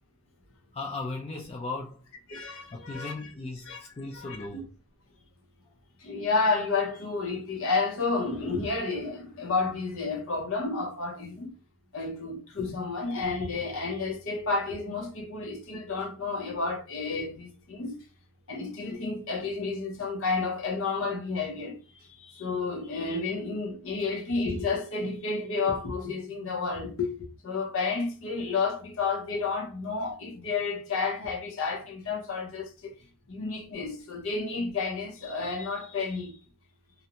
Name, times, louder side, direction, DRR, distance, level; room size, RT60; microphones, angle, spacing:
voice 1, 0.7-2.0 2.7-4.7, left 3 dB, 25° left, 0.4 m, -37 dB
voice 2, 2.3-3.1 3.7-3.8 4.1-4.6 6.0-11.5 11.9-17.9 18.5-21.8 22.4-27.1 27.4-32.9 33.3-36.3, left 4 dB, 60° left, 0.7 m, -31 dB
2.4 x 2.1 x 2.8 m
head